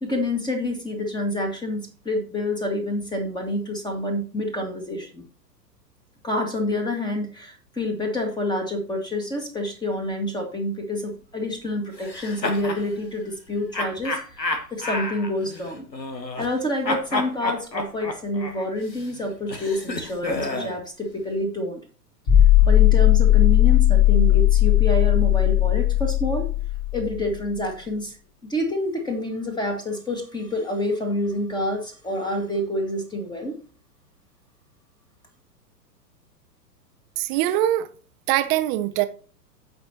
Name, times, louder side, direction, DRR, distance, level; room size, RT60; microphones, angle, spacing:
voice 1, 0.0-5.2 6.2-15.9 16.4-21.8 22.6-26.5 26.9-28.2 28.4-33.6, left 1 dB, 10° left, 1.8 m, -28 dB
sound 1, 12.0-12.8 13.7-16.6 16.8-20.8, left 2 dB, 85° left, 1.4 m, -30 dB
sound 2, 22.3-27.3, left 13 dB, 40° left, 5.2 m, -17 dB
voice 2, 37.2-37.9 38.3-39.1, right 14 dB, 20° right, 0.6 m, -22 dB
16.0 x 5.3 x 2.9 m
figure-of-eight pair, 105°, 49 cm